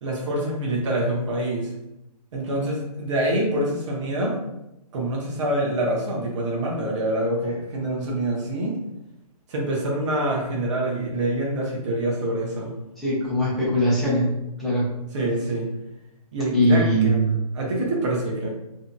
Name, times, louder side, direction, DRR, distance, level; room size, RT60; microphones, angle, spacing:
voice 1, 0.0-1.7 2.3-4.4 4.9-8.8 9.5-12.7 15.1-15.7 16.3-18.5, right 1 dB, 50° right, -2 dB, 0.8 m, -26 dB
voice 2, 13.0-14.3 14.6-14.8 16.5-17.4, equal, ahead, -10 dB, 0.8 m, -21 dB
2.7 x 2.6 x 2.2 m, 0.89 s
hypercardioid pair, 150°, 20 cm